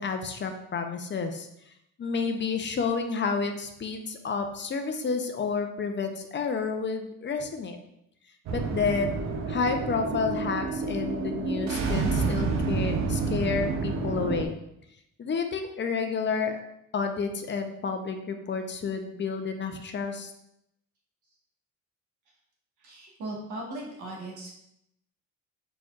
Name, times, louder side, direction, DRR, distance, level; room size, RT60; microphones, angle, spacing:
voice 1, 0.0-1.5 2.0-7.8 8.5-9.2 9.5-14.6 15.2-16.6 16.9-20.3, left 5 dB, 40° left, 6 dB, 0.6 m, -30 dB
sound 1, 8.5-14.5, right 4 dB, 65° right, 0.7 m, -29 dB
voice 2, 22.8-24.5, right 1 dB, 85° right, -2 dB, 1.4 m, -38 dB
4.4 x 4.3 x 2.4 m, 0.78 s
cardioid pair, 90°, 30 cm